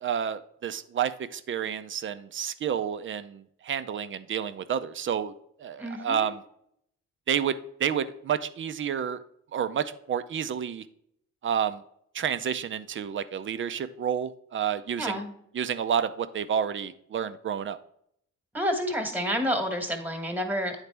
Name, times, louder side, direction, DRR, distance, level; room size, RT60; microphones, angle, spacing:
voice 1, 0.0-5.3 5.6-6.4 7.3-9.2 9.5-10.8 11.4-11.8 12.1-15.2 15.5-17.8, right 8 dB, 40° right, 12 dB, 0.5 m, -30 dB
voice 2, 5.8-6.3 15.0-15.3 18.5-20.9, equal, 5° right, 5 dB, 1.3 m, -29 dB
9.4 x 4.0 x 3.4 m, 0.71 s
cardioid pair, 90°, 30 cm